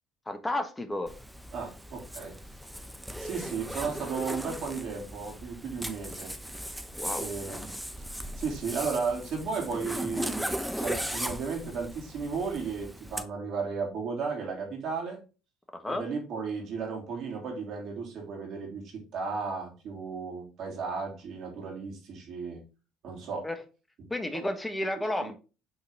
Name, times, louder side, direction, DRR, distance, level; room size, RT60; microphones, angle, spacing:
voice 1, 0.3-1.1 6.9-7.3 15.7-16.0 23.4-23.6 24.1-25.4, left 1 dB, 15° left, 7 dB, 1.4 m, -32 dB
Zipper (clothing), 1.1-13.2, equal, ahead, 0.8 m, -37 dB
voice 2, 1.5-2.3 3.2-6.3 7.2-7.6 8.4-15.2 15.9-22.6 23.0-23.5, right 5 dB, 60° right, 0 dB, 2.9 m, -34 dB
8.1 x 4.0 x 3.6 m, 0.32 s
hypercardioid pair, 60°, 0 cm